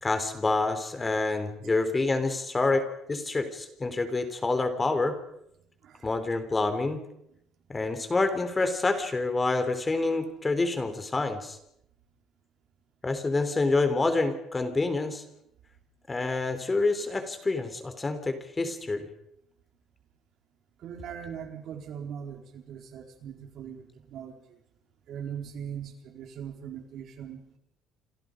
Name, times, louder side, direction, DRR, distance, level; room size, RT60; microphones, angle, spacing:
voice 1, 0.0-5.2 6.0-7.0 7.7-11.6 13.0-15.2 16.1-19.1, left 3 dB, 20° left, 9 dB, 3.6 m, -27 dB
voice 2, 20.8-24.6 25.1-27.4, right 8 dB, 60° right, 4 dB, 4.2 m, -40 dB
29.0 x 27.0 x 5.2 m, 0.75 s
cardioid pair, 125°, 0 cm